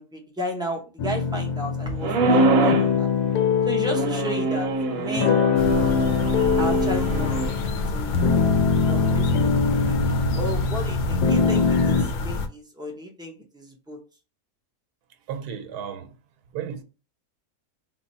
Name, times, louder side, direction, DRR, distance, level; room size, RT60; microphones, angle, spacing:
voice 1, 0.0-3.1 3.6-5.4 6.6-9.3 9.6-14.0, equal, 5° right, 0.3 m, -34 dB
sound 1, 1.0-12.0, left 5 dB, 85° left, 1.2 m, -23 dB
sound 2, 2.0-2.9 3.9-7.5, right 4 dB, 65° right, 1.0 m, -25 dB
sound 3, 5.5-12.5, left 2 dB, 65° left, 0.9 m, -29 dB
voice 2, 15.3-16.2 16.5-16.8, right 8 dB, 90° right, 1.2 m, -33 dB
3.5 x 2.2 x 4.1 m
omnidirectional pair, 1.6 m